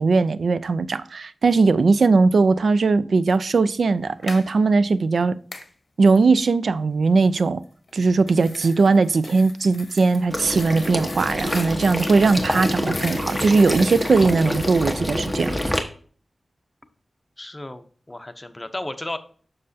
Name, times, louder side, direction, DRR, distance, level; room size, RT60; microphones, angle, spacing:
voice 1, 0.0-5.4 6.0-7.6 7.9-15.5, right 4 dB, 75° right, 0.4 m, -19 dB
sound 1, 4.1-4.5 5.5-5.7 7.9-15.0, left 3 dB, 55° left, 0.8 m, -39 dB
Water / Liquid, 10.3-15.8, equal, 5° right, 1.2 m, -26 dB
voice 2, 17.4-19.2, left 1 dB, 20° left, 0.8 m, -34 dB
7.4 x 6.5 x 2.7 m
wide cardioid pair, 80°, 0 cm